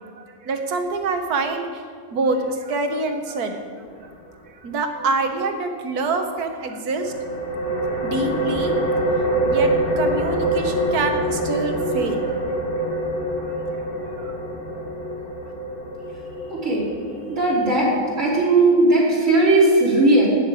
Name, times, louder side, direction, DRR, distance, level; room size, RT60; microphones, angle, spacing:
voice 1, 0.0-1.8 2.1-3.6 4.0-4.1 4.5-7.3 7.7-9.1 9.4-12.4 12.9-13.0 13.3-13.6 14.1-14.4, right 3 dB, 90° right, 6 dB, 1.6 m, -26 dB
sound 1, 6.9-18.3, right 1 dB, 30° left, 2.7 m, -25 dB
voice 2, 17.3-17.9 18.2-20.3, right 2 dB, 55° right, -6 dB, 3.9 m, -17 dB
12.0 x 6.6 x 8.6 m, 2.2 s
omnidirectional pair, 1.6 m